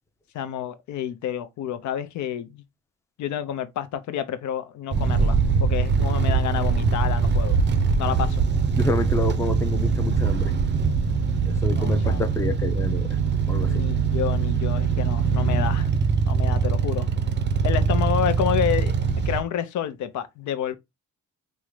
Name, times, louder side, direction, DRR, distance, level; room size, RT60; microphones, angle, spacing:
voice 1, 0.3-2.6 3.2-7.6 8.0-8.4 11.7-12.2 13.7-15.9 16.2-17.1 17.6-20.8, left 9 dB, 70° left, 0.6 m, -29 dB
sound 1, 4.9-19.4, right 5 dB, 35° right, 0.5 m, -22 dB
voice 2, 8.8-10.5 11.5-13.2 13.5-13.8, left 2 dB, 10° left, 0.5 m, -29 dB
3.6 x 2.1 x 3.1 m
cardioid pair, 90°, 30 cm